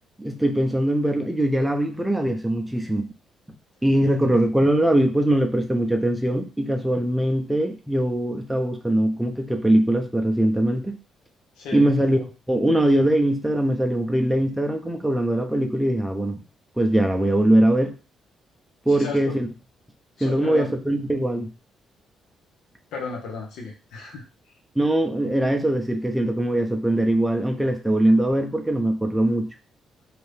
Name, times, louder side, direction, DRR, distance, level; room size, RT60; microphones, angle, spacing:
voice 1, 0.2-3.1 3.8-11.0 11.7-16.4 16.8-17.9 18.9-19.5 20.2-21.5 24.8-29.5, right 1 dB, 5° right, 4 dB, 0.5 m, -21 dB
voice 2, 11.6-11.9 18.9-19.4 20.2-20.8 22.9-24.2, left 4 dB, 85° left, 0 dB, 0.9 m, -34 dB
2.7 x 2.4 x 3.3 m, 0.34 s
cardioid pair, 90°, 0 cm